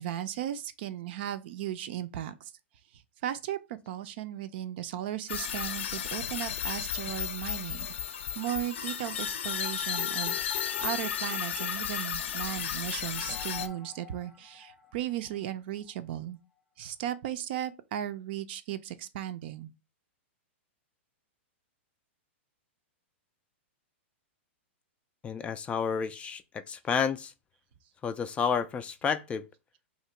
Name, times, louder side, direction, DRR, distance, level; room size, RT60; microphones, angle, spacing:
voice 1, 0.0-2.5 2.9-7.9 8.4-16.4 16.8-19.7, right 12 dB, 55° right, 0.5 m, -36 dB
sound 1, 5.3-13.7, left 9 dB, 70° left, 0.6 m, -33 dB
sound 2, 12.6-16.0, left 5 dB, 5° right, 0.7 m, -48 dB
voice 2, 25.2-27.3 28.0-29.4, left 6 dB, 15° left, 0.3 m, -30 dB
2.9 x 2.7 x 4.3 m
hypercardioid pair, 130°, 7 cm